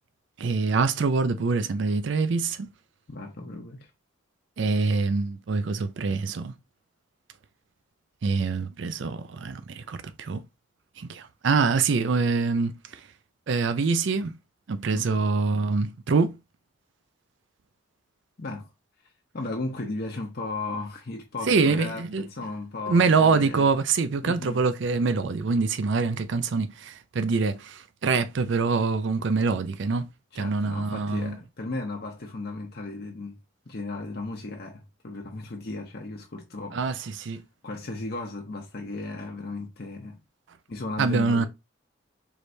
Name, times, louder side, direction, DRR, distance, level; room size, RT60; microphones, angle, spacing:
voice 1, 0.4-2.7 4.6-6.5 8.2-10.4 11.0-13.0 13.5-14.3 14.7-16.4 21.5-22.2 22.9-30.1 30.4-31.3 36.7-37.4 41.0-41.5, right 4 dB, 60° right, 0.4 m, -25 dB
voice 2, 3.1-3.9 14.9-15.1 18.4-18.7 19.3-23.7 24.2-24.6 30.3-33.4 33.7-36.8 37.6-40.2 40.7-41.5, left 2 dB, 50° left, 0.7 m, -35 dB
4.7 x 3.3 x 2.6 m
head